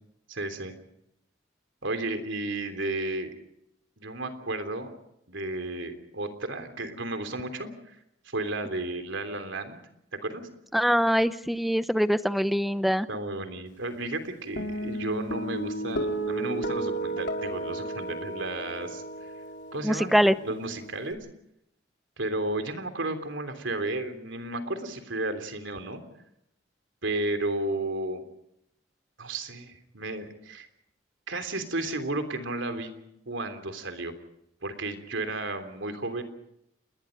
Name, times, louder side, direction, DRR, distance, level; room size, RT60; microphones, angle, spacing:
voice 1, 0.3-0.7 1.8-3.3 4.0-4.9 5.3-8.0 8.2-9.8 10.2-10.5 13.1-19.3 19.7-21.2 22.2-26.0 27.0-28.2 29.2-30.7 31.3-32.9 33.3-34.1 34.6-36.2, right 2 dB, 70° right, 7 dB, 3.4 m, -33 dB
voice 2, 10.7-13.1 19.8-20.3, equal, ahead, 12 dB, 0.8 m, -23 dB
Guitar, 14.6-21.1, right 2 dB, 60° left, 4.2 m, -33 dB
29.5 x 21.0 x 5.2 m, 0.80 s
head